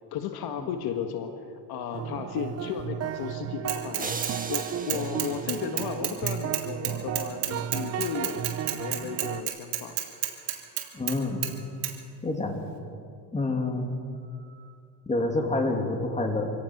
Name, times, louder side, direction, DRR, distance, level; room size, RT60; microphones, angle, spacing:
voice 1, 0.1-1.3 1.7-4.2 4.5-10.0, left 7 dB, 60° left, 6 dB, 1.7 m, -34 dB
sound 1, 1.9-9.4, right 10 dB, 35° right, 0.6 m, -34 dB
Bicycle / Mechanisms, 3.7-4.6 4.9-11.2 11.4-11.5 11.8-11.9, right 13 dB, 65° right, 3.0 m, -30 dB
sound 2, 4.0-6.3, right 4 dB, 20° right, 1.6 m, -38 dB
voice 2, 10.9-11.5 12.2-12.6 13.3-13.9 15.1-16.5, left 2 dB, 15° left, 2 dB, 2.8 m, -28 dB
25.0 x 17.5 x 6.1 m, 2.4 s
cardioid pair, 120°, 43 cm